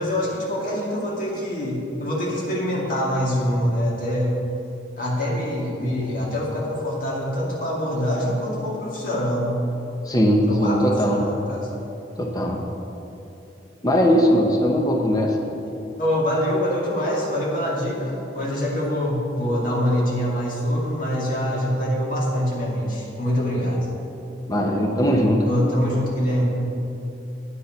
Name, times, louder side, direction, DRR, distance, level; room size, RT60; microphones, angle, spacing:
voice 1, 0.0-4.3 5.0-9.6 10.5-11.7 16.0-23.9 25.4-26.5, equal, 45° left, -4 dB, 2.4 m, -24 dB
voice 2, 10.1-11.2 12.2-12.6 13.8-15.4 24.5-25.6, equal, 20° left, 1 dB, 0.9 m, -19 dB
9.6 x 9.4 x 5.8 m, 2.9 s
head